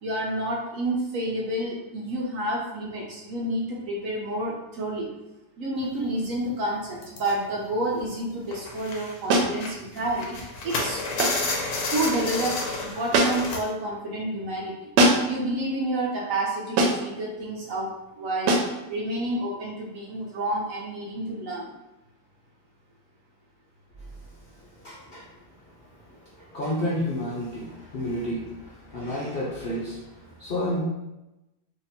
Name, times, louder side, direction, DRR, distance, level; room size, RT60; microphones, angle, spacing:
voice 1, 0.0-5.1 5.6-11.0 11.9-12.6 12.8-14.9 15.3-18.6 18.9-21.7, right 1 dB, 65° right, -2 dB, 0.9 m, -29 dB
sound 1, 5.8-5.9 6.2-6.4 7.0-8.2 8.5-13.6, left 3 dB, 70° left, 1.2 m, -31 dB
sound 2, 9.3-9.6 11.2-11.5 13.1-13.6 15.0-15.4 16.8-17.1 18.5-18.8, right 2 dB, 85° right, 1.2 m, -21 dB
voice 2, 24.0-25.4 25.9-30.8, left 1 dB, 50° left, -6 dB, 0.7 m, -32 dB
3.0 x 2.8 x 4.0 m, 0.97 s
omnidirectional pair, 1.8 m